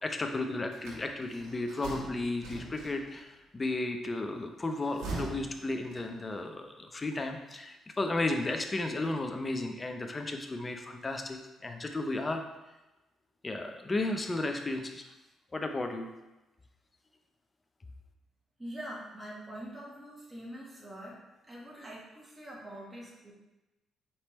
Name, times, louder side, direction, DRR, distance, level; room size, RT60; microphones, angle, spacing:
voice 1, 0.0-12.5 13.4-15.1 15.5-16.1, left 2 dB, 25° left, 5 dB, 0.5 m, -34 dB
sound 1, 0.7-3.3 4.6-6.4, right 3 dB, 85° right, 1.3 m, -42 dB
voice 2, 18.6-21.2 21.4-23.3, right 1 dB, 15° right, -4 dB, 1.2 m, -44 dB
4.2 x 3.3 x 3.0 m, 1.0 s
cardioid pair, 90°, 0 cm